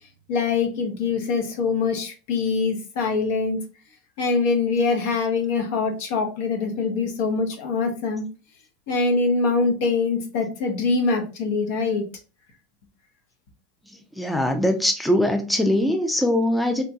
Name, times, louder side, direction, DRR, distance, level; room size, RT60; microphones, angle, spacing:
voice 1, 0.3-3.6 4.2-8.3 8.9-12.0, left 4 dB, 65° left, 3 dB, 0.8 m, -23 dB
voice 2, 14.2-16.8, left 1 dB, 5° left, 5 dB, 0.4 m, -21 dB
2.9 x 2.2 x 2.6 m, 0.34 s
hypercardioid pair, 90°, 0 cm